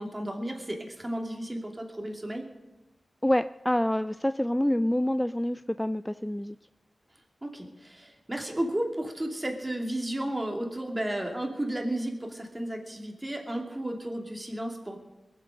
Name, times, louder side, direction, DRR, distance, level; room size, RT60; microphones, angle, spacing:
voice 1, 0.0-2.5 7.4-15.0, right 1 dB, 25° right, 2 dB, 2.7 m, -33 dB
voice 2, 3.2-6.6, left 1 dB, 10° left, 12 dB, 0.4 m, -27 dB
21.5 x 7.7 x 6.4 m, 1.0 s
cardioid pair, 55°, 0 cm